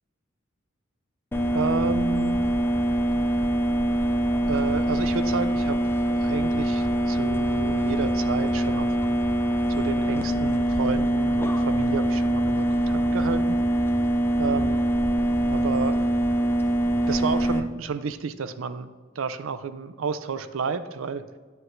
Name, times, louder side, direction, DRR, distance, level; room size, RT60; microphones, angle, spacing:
sound 1, 1.3-17.6, right 1 dB, 10° left, 0.4 m, -24 dB
voice 1, 1.5-2.4 4.5-5.8 6.1-9.0 9.8-13.6 14.4-14.8 15.5-16.0 17.1-18.9 19.2-21.2, right 5 dB, 80° right, 12 dB, 0.5 m, -31 dB
9.5 x 7.9 x 2.6 m, 1.5 s
head